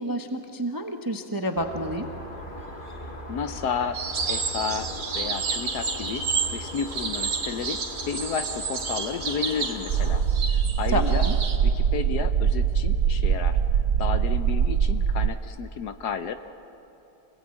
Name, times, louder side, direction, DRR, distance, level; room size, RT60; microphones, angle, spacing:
voice 1, 0.0-2.1 10.9-11.4, equal, 15° right, 5 dB, 0.7 m, -29 dB
sound 1, 1.6-10.2, left 1 dB, 25° left, 2.0 m, -39 dB
voice 2, 3.3-4.0 4.3-10.2 10.8-11.3 11.6-13.6 14.0-16.3, left 6 dB, 65° left, 10 dB, 1.3 m, -32 dB
sound 2, 3.9-11.6, right 5 dB, 80° right, 2.6 m, -30 dB
sound 3, 9.9-15.3, right 7 dB, 65° right, 0.9 m, -23 dB
25.5 x 18.5 x 8.9 m, 2.9 s
omnidirectional pair, 2.1 m